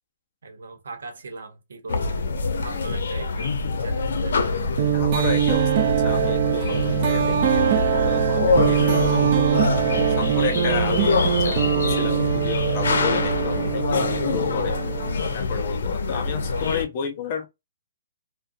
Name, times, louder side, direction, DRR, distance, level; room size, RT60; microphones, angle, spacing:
voice 1, 0.4-2.2 2.5-3.5 3.8-4.6 16.1-16.2, right 3 dB, 80° right, 0.8 m, -40 dB
sound 1, 1.9-16.9, left 4 dB, 75° left, 0.7 m, -25 dB
sound 2, 4.8-15.4, right 11 dB, 30° right, 0.3 m, -23 dB
voice 2, 4.9-9.6 10.1-14.8 15.3-17.5, left 6 dB, 30° left, 0.5 m, -32 dB
sound 3, 10.8-15.1, left 4 dB, 5° right, 0.7 m, -45 dB
2.4 x 2.2 x 2.5 m
hypercardioid pair, 175°, 0 cm